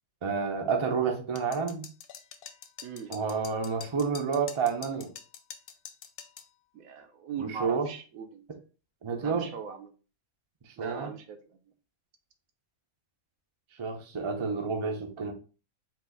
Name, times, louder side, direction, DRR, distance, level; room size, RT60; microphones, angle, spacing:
voice 1, 0.2-1.9 3.1-5.1 7.4-7.9 9.0-9.5 10.8-11.1 13.8-15.3, right 5 dB, 35° right, 3 dB, 0.5 m, -29 dB
sound 1, 1.4-6.5, left 8 dB, 70° left, 0.5 m, -45 dB
voice 2, 2.8-3.1 6.7-8.5 9.2-9.9 10.8-11.6, right 6 dB, 80° right, 6 dB, 1.1 m, -40 dB
4.4 x 2.5 x 3.8 m, 0.35 s
omnidirectional pair, 1.5 m